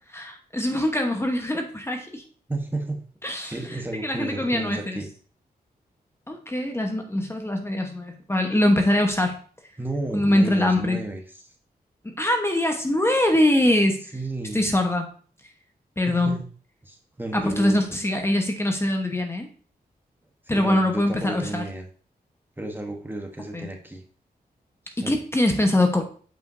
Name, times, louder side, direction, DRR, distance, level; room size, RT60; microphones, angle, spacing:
voice 1, 0.1-2.2 3.2-5.0 6.3-9.4 10.1-11.0 12.0-14.1 14.5-15.1 16.0-16.4 17.3-19.5 20.5-21.6 23.5-23.7 25.0-26.0, left 1 dB, 15° left, 4 dB, 1.0 m, -23 dB
voice 2, 2.5-3.0 3.4-5.1 9.8-11.5 14.1-14.7 16.1-16.5 16.8-17.8 20.5-21.9 22.6-24.0 24.9-25.2, right 2 dB, 10° right, 3 dB, 1.1 m, -32 dB
8.1 x 5.1 x 2.6 m, 0.43 s
cardioid pair, 75°, 16 cm